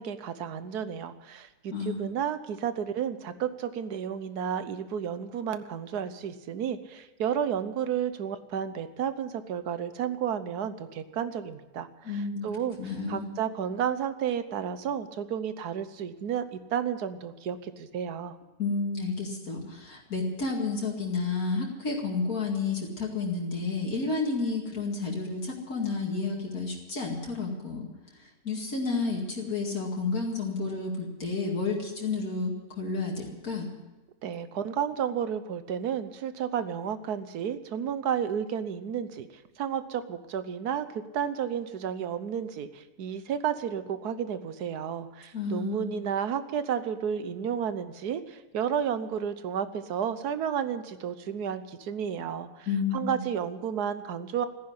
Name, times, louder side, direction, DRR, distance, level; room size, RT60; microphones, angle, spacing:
voice 1, 0.0-18.3 34.2-39.3 39.6-52.7 52.9-54.5, right 8 dB, 85° right, 12 dB, 1.5 m, -32 dB
voice 2, 1.7-2.1 12.0-12.5 12.8-13.3 18.6-27.9 28.2-33.7 45.3-46.0 52.7-53.2, left 4 dB, 70° left, -1 dB, 2.7 m, -31 dB
14.5 x 10.5 x 9.5 m, 1.2 s
omnidirectional pair, 1.6 m